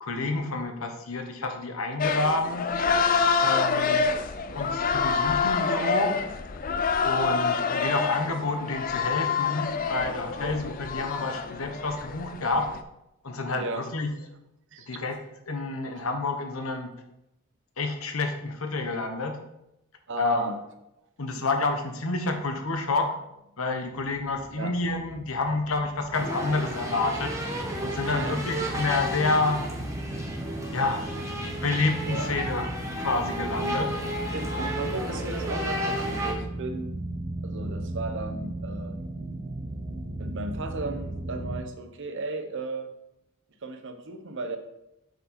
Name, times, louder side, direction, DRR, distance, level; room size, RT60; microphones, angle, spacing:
voice 1, 0.0-2.7 3.4-4.1 4.5-6.1 7.0-12.7 13.2-14.1 14.9-15.2 15.5-16.9 17.8-19.4 20.2-20.4 21.2-23.1 23.6-27.4 27.8-29.6 30.7-31.1 31.6-32.7 33.0-34.0, left 3 dB, 70° left, 5 dB, 1.0 m, -28 dB
sound 1, 2.0-12.8, left 5 dB, 40° left, 0.5 m, -27 dB
voice 2, 13.6-13.9 14.7-15.0 20.1-20.6 24.5-24.7 28.0-28.4 32.1-32.3 34.3-36.9 37.4-39.0 40.2-42.9 43.6-44.6, right 3 dB, 60° right, 7 dB, 0.9 m, -35 dB
sound 2, 23.9-41.6, right 1 dB, 30° right, 0.6 m, -37 dB
sound 3, 26.1-36.3, equal, 15° right, 1.2 m, -32 dB
8.1 x 4.8 x 4.3 m, 0.86 s
head